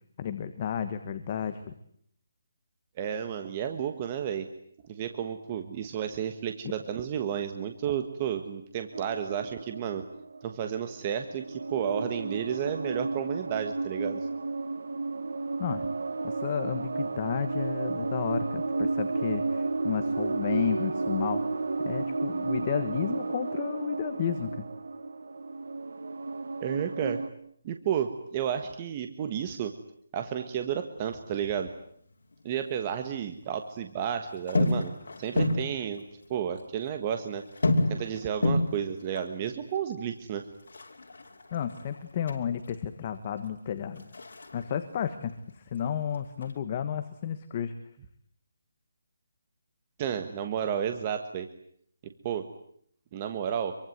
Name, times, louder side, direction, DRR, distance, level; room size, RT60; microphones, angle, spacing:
voice 1, 0.2-1.7 15.6-15.9 16.2-21.4 21.8-24.7 41.5-44.0 44.5-47.7, left 8 dB, 25° left, 9 dB, 1.4 m, -32 dB
voice 2, 3.0-4.5 4.9-10.0 10.4-14.3 26.6-27.2 27.6-29.7 30.1-31.7 32.4-36.0 36.3-37.4 37.9-40.5 50.0-51.5 52.0-52.5 53.1-53.8, right 9 dB, 20° right, 7 dB, 1.4 m, -32 dB
sound 1, 8.9-10.8 11.3-27.3, right 3 dB, 85° right, 2.1 m, -32 dB
sound 2, 31.0-32.6 32.9-33.8 34.3-36.3 36.6-36.7 36.9-42.8 43.2-45.8 46.0-46.6, left 2 dB, 70° left, 5.7 m, -31 dB
26.5 x 24.0 x 9.4 m, 0.66 s
hypercardioid pair, 175°, 0 cm